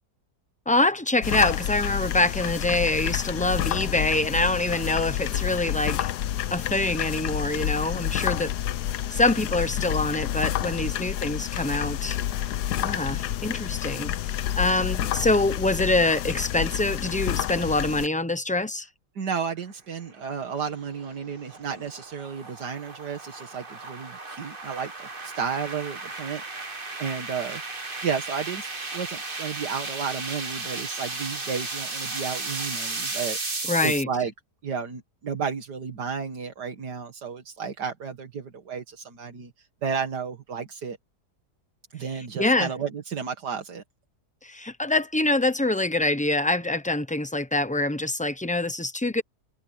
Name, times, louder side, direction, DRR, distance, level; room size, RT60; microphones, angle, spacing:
voice 1, 0.7-6.1 6.5-8.5 9.1-12.2 12.8-18.9 33.7-34.1 42.4-42.7 44.4-49.2, left 2 dB, 5° left, 0.7 m, -25 dB
sound 1, 1.2-18.1, left 11 dB, 80° left, 1.3 m, -29 dB
voice 2, 19.2-26.4 26.7-27.6 28.0-33.4 33.8-34.3 34.6-41.0 41.9-43.8, right 6 dB, 80° right, 2.3 m, -32 dB
sound 2, 20.1-34.0, right 3 dB, 35° right, 2.2 m, -35 dB
omnidirectional pair, 1.7 m